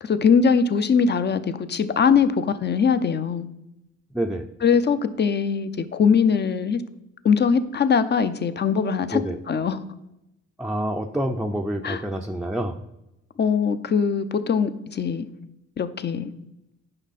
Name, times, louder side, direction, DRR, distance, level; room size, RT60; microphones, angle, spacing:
voice 1, 0.0-3.5 4.6-6.8 7.2-9.2 9.5-9.8 11.8-12.0 13.4-15.3 15.8-16.3, left 6 dB, 35° left, 12 dB, 0.7 m, -21 dB
voice 2, 4.1-4.5 9.1-9.4 10.6-12.7, right 1 dB, ahead, 2 dB, 0.5 m, -27 dB
9.8 x 5.5 x 4.1 m, 0.89 s
cardioid pair, 90°, 30 cm